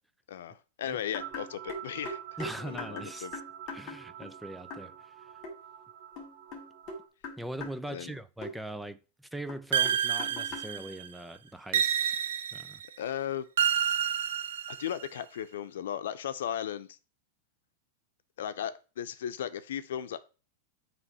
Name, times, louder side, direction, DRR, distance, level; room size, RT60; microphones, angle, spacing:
voice 1, 0.3-3.3 7.9-8.2 13.0-13.4 14.7-17.0 18.4-20.2, left 10 dB, 80° left, 0.6 m, -36 dB
Guatemalan Drum, 1.1-4.4 4.7-4.9 5.4-5.6 6.2-7.8 8.4-8.5 9.5-10.7, left 3 dB, 35° left, 2.3 m, -41 dB
sound 1, 1.2-7.1, right 11 dB, 55° right, 0.9 m, -46 dB
voice 2, 2.4-3.3 3.7-5.3 7.4-12.2 12.5-12.8, right 1 dB, 5° right, 0.3 m, -41 dB
sound 2, 9.7-11.1 11.7-12.9 13.6-15.1, right 9 dB, 80° right, 0.5 m, -29 dB
8.0 x 3.1 x 5.5 m
supercardioid pair, 155°, 0 cm